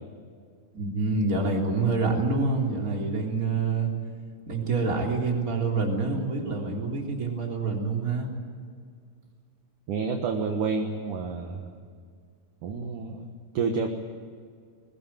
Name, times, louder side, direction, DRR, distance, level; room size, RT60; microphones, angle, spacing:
voice 1, 0.7-3.9 4.5-8.3, right 3 dB, 20° right, 0 dB, 3.3 m, -27 dB
voice 2, 9.9-11.7 12.6-13.3 13.5-13.9, right 5 dB, 60° right, 3 dB, 2.6 m, -29 dB
21.5 x 20.0 x 9.0 m, 2.1 s
omnidirectional pair, 4.7 m